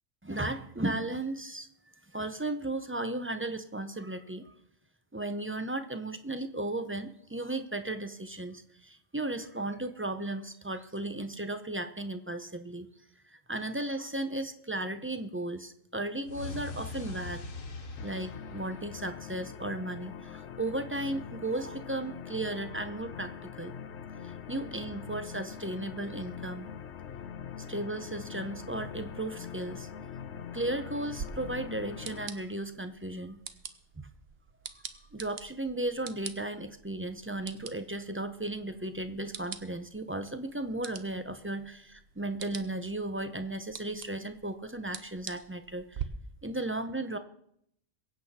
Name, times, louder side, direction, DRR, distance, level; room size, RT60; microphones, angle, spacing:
voice 1, 0.2-1.7 2.1-4.5 5.1-12.9 13.3-17.4 18.0-23.7 24.2-26.7 27.7-29.9 30.5-33.4 34.0-34.1 35.1-46.0 46.4-47.2, right 2 dB, 15° right, 10 dB, 0.5 m, -35 dB
sound 1, 16.3-19.4, left 3 dB, 80° left, 1.7 m, -41 dB
sound 2, 18.0-32.3, left 7 dB, 65° left, 1.0 m, -43 dB
sound 3, 31.2-46.0, right 7 dB, 55° right, 1.0 m, -46 dB
22.5 x 8.4 x 4.3 m, 0.71 s
omnidirectional pair, 1.4 m